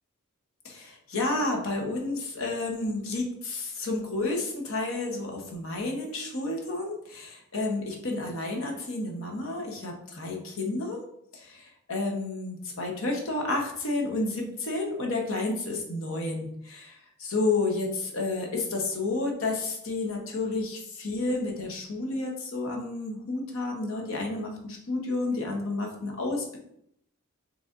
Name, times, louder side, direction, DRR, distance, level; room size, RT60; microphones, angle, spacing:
voice 1, 0.6-11.0 11.3-26.6, left 2 dB, 65° left, 0 dB, 1.0 m, -31 dB
6.3 x 3.2 x 2.5 m, 0.73 s
head